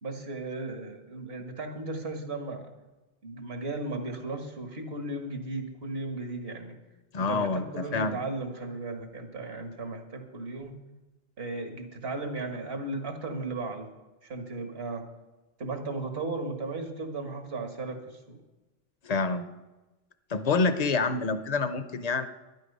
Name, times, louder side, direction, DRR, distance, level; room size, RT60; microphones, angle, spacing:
voice 1, 0.0-2.7 3.2-6.8 7.2-10.8 11.4-13.9 14.2-15.1 15.6-18.0 18.3-18.4, right 2 dB, 75° right, 5 dB, 1.7 m, -35 dB
voice 2, 7.1-8.2 19.0-19.5 20.3-22.3, left 4 dB, 45° left, 11 dB, 0.7 m, -27 dB
11.5 x 11.0 x 5.4 m, 1.1 s
omnidirectional pair, 1.0 m